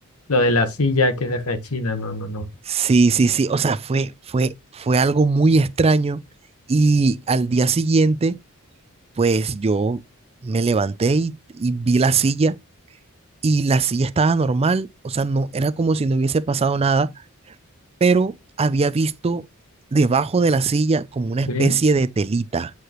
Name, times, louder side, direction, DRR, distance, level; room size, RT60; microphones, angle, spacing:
voice 1, 0.3-2.5 21.5-21.8, left 2 dB, 75° left, 1.3 m, -22 dB
voice 2, 2.7-6.2 6.7-8.4 9.2-10.0 10.4-12.6 13.4-17.1 18.0-19.5 19.9-22.7, right 3 dB, 25° right, 0.4 m, -20 dB
8.3 x 4.8 x 3.0 m
head